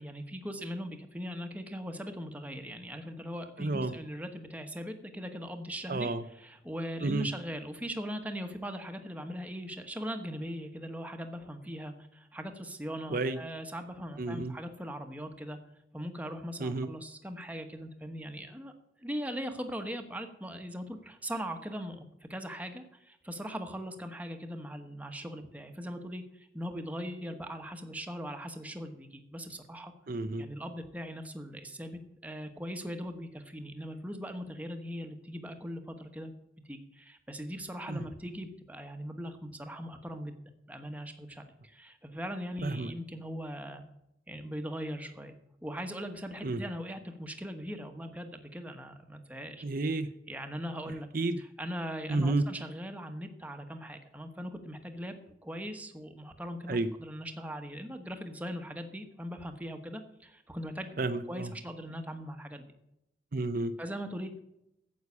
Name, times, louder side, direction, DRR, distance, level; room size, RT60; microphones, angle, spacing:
voice 1, 0.0-15.6 15.9-18.7 19.0-29.9 30.4-36.3 36.7-40.3 40.7-43.8 44.3-45.3 45.6-49.6 50.3-51.1 51.4-61.0 61.3-62.7 63.8-64.4, equal, 10° right, 6 dB, 1.2 m, -40 dB
voice 2, 3.6-3.9 5.9-6.2 7.0-7.3 13.1-13.4 14.2-14.5 16.6-16.9 30.1-30.4 37.9-38.0 42.6-42.9 46.4-46.6 49.6-50.1 51.1-51.4 52.1-52.4 56.7-56.9 61.0-61.5 63.3-63.7, right 2 dB, 50° right, 9 dB, 0.6 m, -31 dB
9.5 x 8.1 x 8.4 m, 0.82 s
head